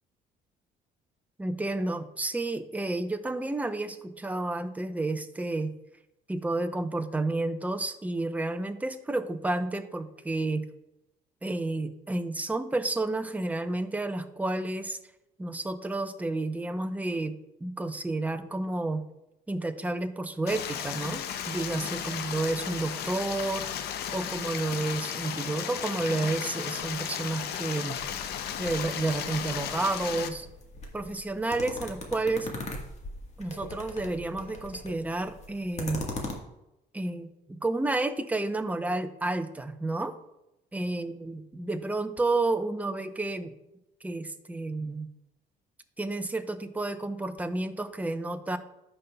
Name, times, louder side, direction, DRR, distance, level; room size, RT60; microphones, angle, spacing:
voice 1, 1.4-5.7 6.3-10.6 11.4-15.0 15.4-17.4 17.6-19.0 19.5-23.7 24.1-28.0 28.6-30.5 30.9-32.5 33.4-36.0 36.9-40.2 40.7-43.5 44.0-45.1 46.0-48.6, right 2 dB, 10° right, 8 dB, 0.6 m, -31 dB
Stream, 20.5-30.3, left 9 dB, 70° left, 0.6 m, -35 dB
sound 1, 28.0-36.3, left 2 dB, 40° left, 1.5 m, -41 dB
14.5 x 5.4 x 2.3 m, 0.91 s
cardioid pair, 110°, 17 cm